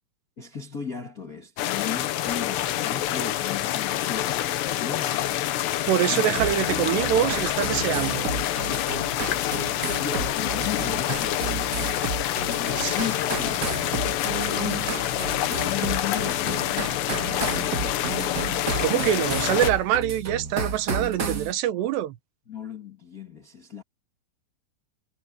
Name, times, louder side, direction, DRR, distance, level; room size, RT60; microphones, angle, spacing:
voice 1, 0.4-5.7 6.1-6.3 9.9-12.0 12.4-14.1 14.5-15.0 15.5-18.3 21.7-21.8 22.5-23.8, left 8 dB, 40° left, 1.3 m, -37 dB
sound 1, 1.6-19.7, left 13 dB, 90° left, 3.4 m, -27 dB
voice 2, 5.9-8.3 12.8-13.0 18.8-22.2, right 12 dB, 85° right, 3.3 m, -24 dB
sound 2, 6.4-21.5, right 4 dB, 50° right, 1.1 m, -32 dB
omnidirectional pair, 4.8 m